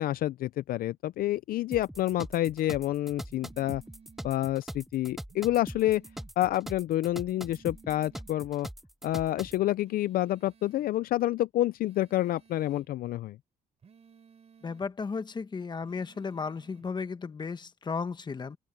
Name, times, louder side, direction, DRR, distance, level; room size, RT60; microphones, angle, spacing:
voice 1, 0.0-3.8 4.2-6.0 6.4-8.7 9.0-13.4, left 14 dB, 60° left, 0.5 m, -28 dB
sound 1, 1.7-9.6, equal, ahead, 0.3 m, -42 dB
sound 2, 3.3-4.3 5.3-6.3 7.3-8.3 9.8-10.9 11.8-12.9 13.8-14.9 15.8-16.9, right 6 dB, 40° right, 4.5 m, -57 dB
voice 2, 14.6-18.6, left 5 dB, 25° left, 1.3 m, -34 dB
open air
cardioid pair, 110°, 17 cm